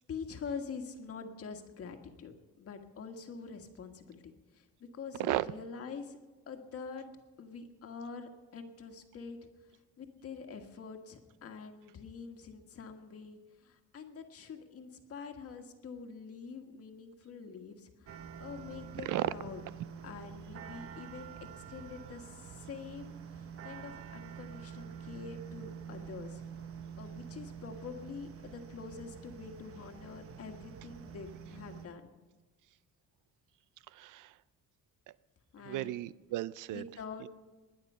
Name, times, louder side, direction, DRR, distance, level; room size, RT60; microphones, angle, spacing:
voice 1, 0.1-2.3 2.6-4.2 4.5-6.2 6.5-7.1 7.4-9.4 10.0-19.6 20.0-26.4 27.0-32.1 35.5-36.1 36.7-37.3, left 5 dB, 45° left, 5 dB, 1.6 m, -45 dB
sound 1, 18.1-31.9, right 7 dB, 45° right, 0.9 m, -47 dB
voice 2, 33.9-34.3 35.7-36.8 37.2-37.3, right 15 dB, 75° right, 18 dB, 0.5 m, -34 dB
20.5 x 9.5 x 5.5 m, 1.2 s
cardioid pair, 155°, 32 cm